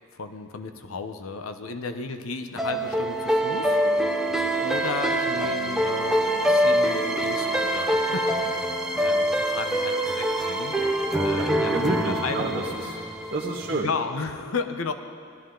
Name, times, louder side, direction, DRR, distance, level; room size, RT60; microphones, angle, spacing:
voice 1, 0.1-10.8 11.2-11.7 12.1-12.7 13.7-14.9, left 4 dB, 85° left, 8 dB, 0.8 m, -34 dB
sound 1, 2.6-13.8, right 1 dB, ahead, 0.7 m, -25 dB
voice 2, 11.1-13.0 13.3-13.9, right 2 dB, 45° right, -4 dB, 1.1 m, -29 dB
19.5 x 13.0 x 3.9 m, 2.3 s
head